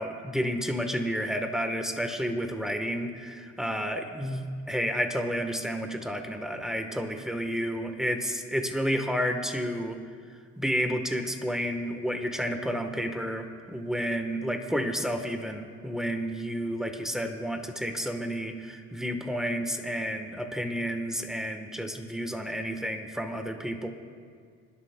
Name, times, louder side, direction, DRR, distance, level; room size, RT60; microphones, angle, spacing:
voice 1, 0.0-10.0 10.6-23.9, equal, ahead, 6 dB, 1.1 m, -31 dB
26.0 x 11.5 x 2.2 m, 2.1 s
cardioid pair, 90°, 30 cm